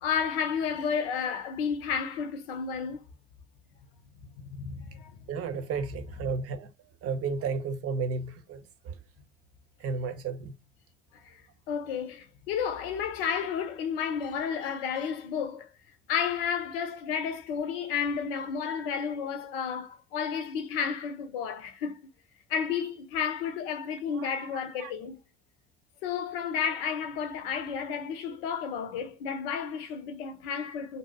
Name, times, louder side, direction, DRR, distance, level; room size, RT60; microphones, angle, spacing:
voice 1, 0.0-3.0 4.2-5.1 11.2-11.3 11.7-15.7 16.1-21.9 22.5-25.2 26.0-31.0, left 7 dB, 75° left, 0.6 m, -32 dB
voice 2, 5.3-6.7 7.0-8.6 8.8-8.9 9.8-10.5 24.1-24.5 24.8-24.9, right 4 dB, 55° right, 0.7 m, -33 dB
2.7 x 2.1 x 3.4 m
hypercardioid pair, 55°, 29 cm